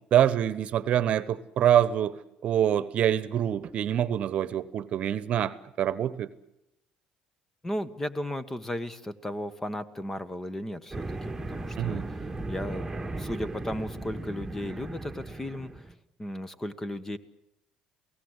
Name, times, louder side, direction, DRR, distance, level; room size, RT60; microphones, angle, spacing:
voice 1, 0.1-6.3 11.8-12.1, right 10 dB, 55° right, 16 dB, 1.1 m, -25 dB
voice 2, 7.6-12.2 12.5-12.9 13.2-15.9 16.2-17.2, left 1 dB, 15° left, 13 dB, 1.4 m, -35 dB
sound 1, 10.9-15.9, right 2 dB, 15° right, 1.8 m, -37 dB
28.0 x 17.5 x 8.2 m, 0.87 s
supercardioid pair, 95°, 3 cm